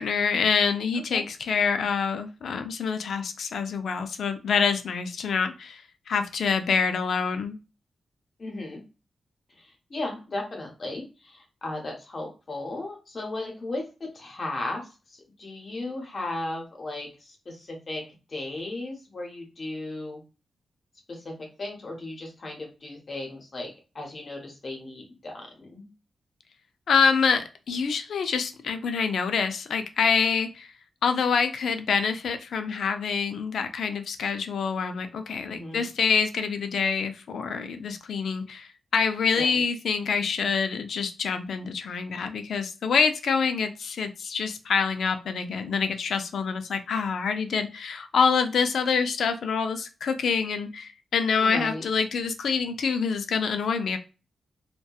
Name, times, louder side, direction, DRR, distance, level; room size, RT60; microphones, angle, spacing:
voice 1, 0.0-7.6 26.9-30.7 31.0-54.0, left 5 dB, 75° left, 8 dB, 0.3 m, -26 dB
voice 2, 0.9-1.2 8.4-8.8 9.6-18.0 18.3-20.2 21.1-25.9 35.4-35.9 39.3-39.6 51.4-51.8, left 2 dB, 35° left, 1 dB, 0.7 m, -36 dB
2.7 x 2.1 x 2.3 m, 0.31 s
wide cardioid pair, 175°, 0 cm